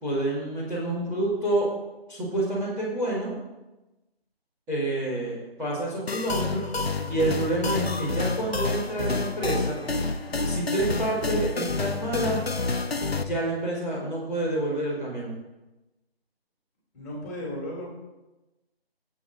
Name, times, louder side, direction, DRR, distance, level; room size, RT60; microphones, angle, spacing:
voice 1, 0.0-1.7 2.1-3.3 4.7-6.7 6.9-9.8 10.4-12.4 13.2-15.3, right 1 dB, 5° right, -13 dB, 2.0 m, -28 dB
sound 1, 6.1-13.2, left 3 dB, 75° left, 1.1 m, -29 dB
voice 2, 16.9-17.9, left 1 dB, 15° left, -4 dB, 2.7 m, -35 dB
21.5 x 8.0 x 2.6 m, 1.0 s
figure-of-eight pair, 160°, 31 cm